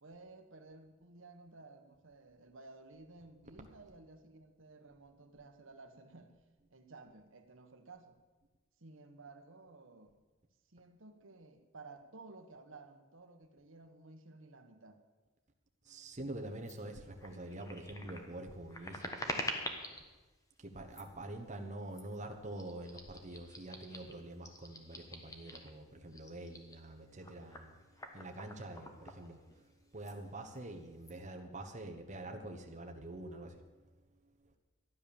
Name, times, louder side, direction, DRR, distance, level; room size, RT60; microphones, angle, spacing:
voice 1, 0.0-6.4 6.7-8.2 8.8-10.2 10.7-15.0, right 3 dB, 65° right, 6 dB, 1.3 m, -55 dB
voice 2, 15.8-19.6 20.6-29.7 29.9-33.7 34.4-34.5, right 1 dB, 35° right, 3 dB, 1.1 m, -46 dB
sound 1, 16.6-16.8 17.2-20.1 20.8-21.2 21.9-22.2 22.5-25.8 26.1-29.7 30.0-30.2 30.5-31.1, left 1 dB, 15° left, 1.4 m, -46 dB
13.0 x 10.0 x 7.1 m, 1.2 s
head